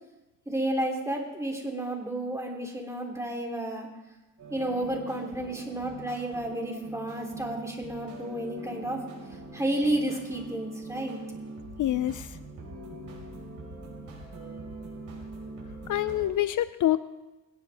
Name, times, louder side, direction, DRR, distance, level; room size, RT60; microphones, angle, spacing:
voice 1, 0.5-3.9 4.5-9.0 9.5-11.2, right 1 dB, 10° right, 0 dB, 3.0 m, -31 dB
sound 1, 4.4-16.3, right 2 dB, 65° right, 5.5 m, -42 dB
voice 2, 11.8-12.3 15.9-17.0, left 13 dB, 65° left, 14 dB, 0.5 m, -26 dB
19.5 x 18.5 x 3.5 m, 1.1 s
cardioid pair, 120°, 34 cm